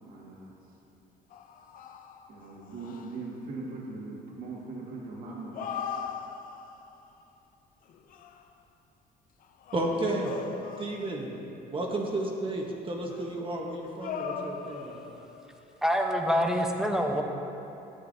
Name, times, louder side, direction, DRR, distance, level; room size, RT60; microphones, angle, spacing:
voice 1, 0.1-0.5 2.3-5.6, right 3 dB, 60° right, -4 dB, 1.7 m, -40 dB
sound 1, 1.3-3.3 5.3-7.0 7.9-8.5 9.4-11.4 13.1-15.6, left 7 dB, 55° left, 0.5 m, -40 dB
voice 2, 9.7-10.3 10.8-11.3 11.7-15.0, right 2 dB, 30° right, -1 dB, 1.1 m, -32 dB
voice 3, 15.8-17.2, equal, 5° right, 2 dB, 0.8 m, -26 dB
12.5 x 7.9 x 2.6 m, 2.9 s
cardioid pair, 110°, 17 cm